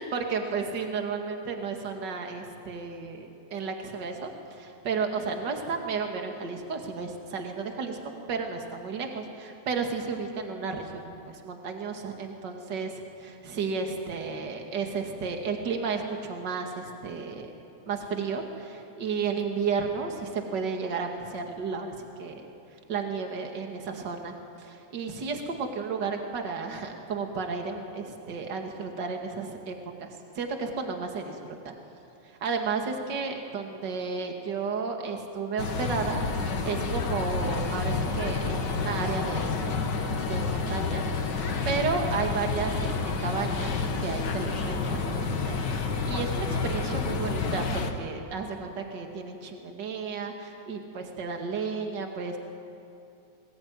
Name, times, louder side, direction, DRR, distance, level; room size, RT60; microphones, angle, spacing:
voice 1, 0.0-8.0 8.3-11.2 11.4-12.9 13.2-17.5 17.9-22.5 22.9-31.4 31.6-31.7 32.2-39.6 40.3-43.0 43.2-52.4, right 5 dB, 40° right, 3 dB, 2.5 m, -33 dB
sound 1, 35.6-47.9, left 4 dB, 45° left, 1.8 m, -29 dB
21.0 x 20.5 x 9.7 m, 2.7 s
omnidirectional pair, 3.3 m